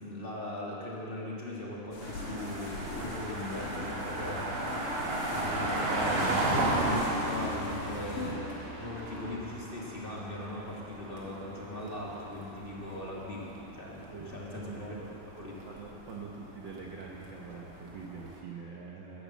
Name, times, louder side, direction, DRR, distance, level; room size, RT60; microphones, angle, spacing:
voice 1, 0.0-8.4 8.8-13.4 13.7-15.0 15.3-15.6, left 1 dB, 20° left, -5 dB, 1.7 m, -40 dB
sound 1, 1.9-8.3, left 3 dB, 75° left, 3.4 m, -40 dB
sound 2, 1.9-10.2, equal, 25° right, 2.8 m, -44 dB
sound 3, 2.0-18.4, right 2 dB, 45° right, 2.6 m, -36 dB
voice 2, 5.0-5.5 14.1-15.2 15.7-19.2, right 4 dB, 80° right, -2 dB, 1.0 m, -45 dB
14.0 x 11.0 x 7.3 m, 3.0 s
omnidirectional pair, 3.7 m